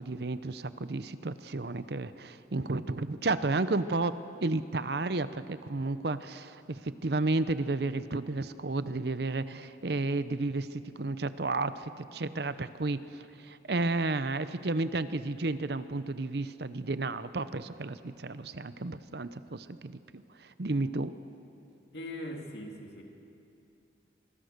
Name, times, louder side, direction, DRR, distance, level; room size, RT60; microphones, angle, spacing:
voice 1, 0.0-4.1 4.4-21.1, right 2 dB, 60° right, 13 dB, 0.7 m, -32 dB
voice 2, 21.9-23.0, left 1 dB, 60° left, 2 dB, 2.8 m, -40 dB
26.0 x 20.5 x 6.7 m, 2.6 s
head